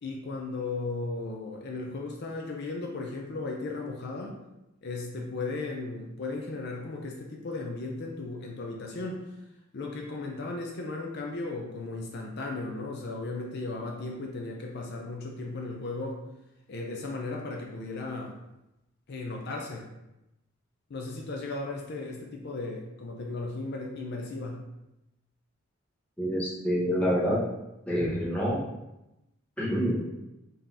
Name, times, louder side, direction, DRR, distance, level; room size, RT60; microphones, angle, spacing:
voice 1, 0.0-4.4 4.8-9.3 9.7-16.2 16.7-18.4 19.1-19.9 20.9-24.6, left 3 dB, 55° left, 0 dB, 0.5 m, -36 dB
voice 2, 26.2-27.4 27.9-28.6 29.6-30.2, equal, 5° left, -6 dB, 0.9 m, -27 dB
3.8 x 2.8 x 3.5 m, 0.92 s
head